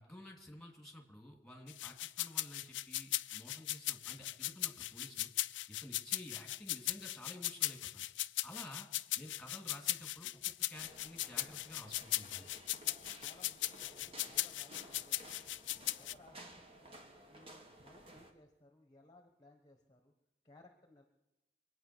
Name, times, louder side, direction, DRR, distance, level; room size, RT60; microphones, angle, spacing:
voice 1, 0.0-5.3 5.7-8.1 8.4-8.9 9.2-12.5, left 1 dB, ahead, 1 dB, 3.0 m, -52 dB
sound 1, 1.7-16.1, left 16 dB, 85° left, 0.5 m, -38 dB
sound 2, 10.7-18.3, right 1 dB, 30° right, 2.0 m, -56 dB
voice 2, 13.2-15.5 15.8-17.0 17.3-20.1 20.4-21.0, left 2 dB, 20° left, 3 dB, 1.3 m, -63 dB
24.5 x 9.0 x 6.3 m, 0.98 s
head